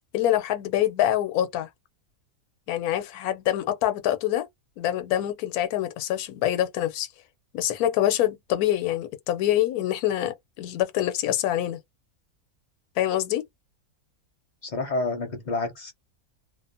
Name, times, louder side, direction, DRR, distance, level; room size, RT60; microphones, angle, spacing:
voice 1, 0.1-1.7 2.7-4.5 4.8-7.1 7.5-11.8 13.0-13.4, left 12 dB, 85° left, 1.1 m, -25 dB
voice 2, 14.6-15.9, left 3 dB, 50° left, 0.5 m, -29 dB
2.6 x 2.0 x 2.5 m
omnidirectional pair, 1.5 m